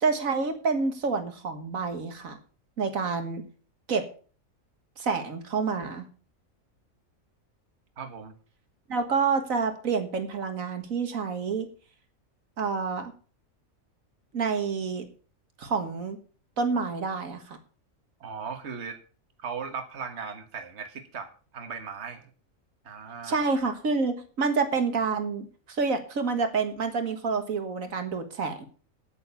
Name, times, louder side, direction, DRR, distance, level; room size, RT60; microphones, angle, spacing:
voice 1, 0.0-2.4 2.8-3.4 3.9-4.0 5.0-6.1 8.9-11.7 12.6-13.1 14.3-15.1 15.6-16.2 16.6-17.6 23.2-28.7, right 4 dB, 80° right, 7 dB, 1.9 m, -28 dB
voice 2, 8.0-8.3 18.2-19.0 19.4-21.3 21.5-22.3 22.8-23.4, right 6 dB, 55° right, 7 dB, 1.7 m, -37 dB
9.4 x 8.8 x 7.0 m, 0.39 s
omnidirectional pair, 1.4 m